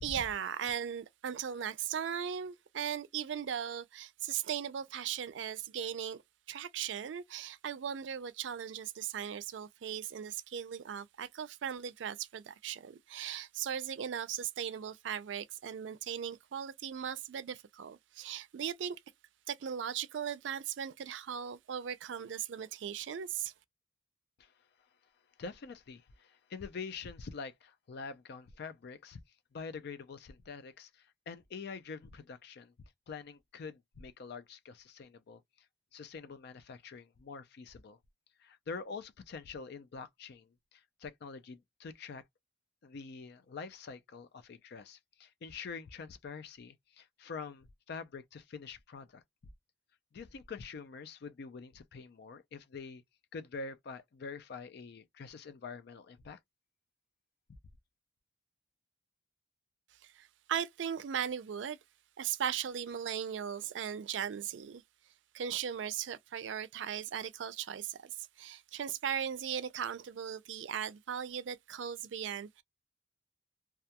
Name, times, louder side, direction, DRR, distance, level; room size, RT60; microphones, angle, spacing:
voice 1, 0.0-6.2 6.5-19.0 19.5-23.5 60.0-61.8 62.2-64.8 65.3-72.6, right 8 dB, 75° right, 0.4 m, -38 dB
voice 2, 25.4-29.2 29.5-32.7 33.1-35.4 35.9-38.0 38.4-42.2 42.8-49.2 50.1-53.0 53.3-56.4, left 5 dB, 60° left, 0.4 m, -46 dB
2.3 x 2.2 x 2.8 m
head